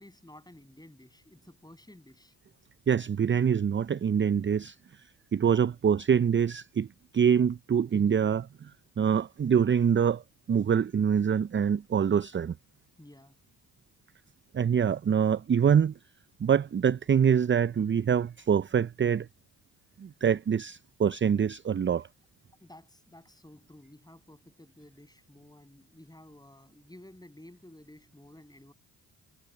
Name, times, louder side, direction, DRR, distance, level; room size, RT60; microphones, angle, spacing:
voice 1, 0.0-2.4 13.0-13.4 22.6-28.7, left 1 dB, 10° left, 7.9 m, -53 dB
voice 2, 2.9-4.8 5.3-6.9 7.1-8.7 9.0-10.2 10.5-12.5 14.5-15.9 16.4-19.3 20.0-22.1, right 7 dB, 30° right, 0.6 m, -25 dB
hypercardioid pair, 50°, 42 cm